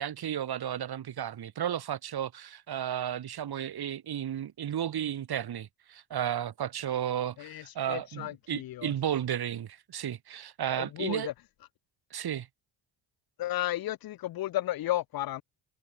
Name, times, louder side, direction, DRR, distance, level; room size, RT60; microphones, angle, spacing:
voice 1, 0.0-11.3 12.1-12.5, right 10 dB, 50° right, 1.7 m, -33 dB
voice 2, 7.4-8.9 10.8-11.3 13.4-15.4, left 14 dB, 50° left, 0.6 m, -33 dB
cardioid pair, 90°, 48 cm